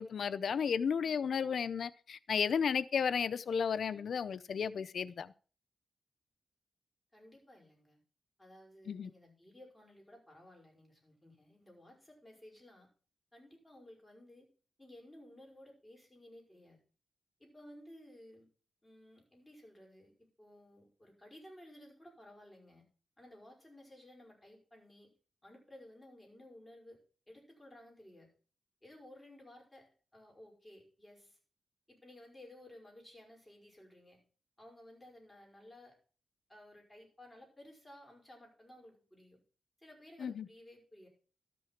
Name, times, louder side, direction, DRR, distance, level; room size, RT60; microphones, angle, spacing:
voice 1, 0.0-5.3 8.9-9.1 40.2-40.5, left 6 dB, 70° left, 0.6 m, -33 dB
voice 2, 7.1-8.0 8.4-12.9 13.3-14.5 14.8-16.8 17.4-18.5 18.8-22.8 23.2-25.1 25.4-27.0 27.3-28.3 28.8-31.4 31.9-34.2 34.6-36.0 36.5-39.4 39.8-41.1, left 1 dB, 10° left, 5.4 m, -56 dB
13.0 x 6.2 x 5.8 m
cardioid pair, 100°, 0 cm